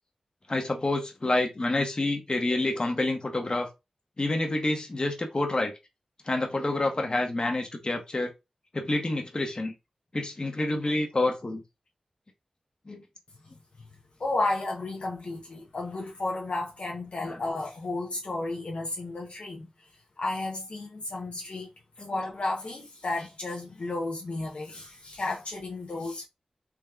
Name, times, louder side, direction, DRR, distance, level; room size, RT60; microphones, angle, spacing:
voice 1, 0.5-3.7 4.2-5.7 6.3-8.3 8.7-9.7 10.1-11.6 12.9-13.0 17.2-17.4 22.0-22.1, left 2 dB, 45° left, 0.9 m, -28 dB
voice 2, 14.2-19.7 20.2-21.7 22.1-26.3, left 2 dB, 70° left, 0.7 m, -32 dB
3.5 x 2.8 x 2.3 m
cardioid pair, 50°, 2 cm